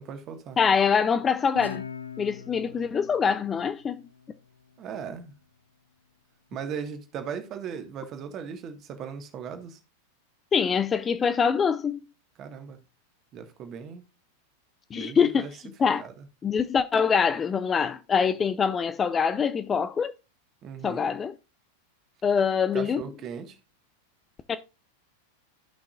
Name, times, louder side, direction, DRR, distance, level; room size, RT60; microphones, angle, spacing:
voice 1, 0.0-0.6 4.8-5.3 6.5-9.8 12.4-12.8 13.3-14.0 14.9-15.5 16.0-16.2 20.6-21.1 22.7-23.6, right 7 dB, 30° right, 1.6 m, -38 dB
voice 2, 0.6-1.9 2.2-4.0 10.5-12.0 14.9-15.5 15.8-16.0 16.4-20.1 20.8-21.4 22.2-23.0 24.5-24.6, left 6 dB, 20° left, 0.5 m, -24 dB
Guitar, 1.5-4.8, left 5 dB, 80° left, 0.7 m, -42 dB
14.0 x 5.8 x 2.5 m
figure-of-eight pair, 90°, 0 cm